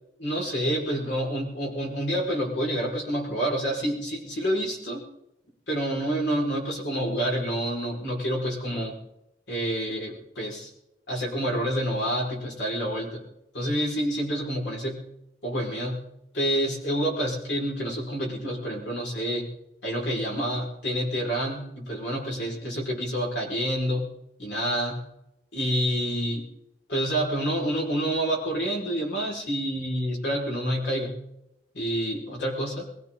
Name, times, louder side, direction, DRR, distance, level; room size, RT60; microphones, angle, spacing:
voice 1, 0.2-5.1 5.7-9.0 9.5-10.7 11.1-13.3 13.5-15.1 15.4-19.5 19.8-24.1 24.4-25.1 25.5-26.5 26.9-31.2 31.7-32.9, equal, 90° left, -1 dB, 5.1 m, -28 dB
22.5 x 16.0 x 3.8 m, 0.86 s
head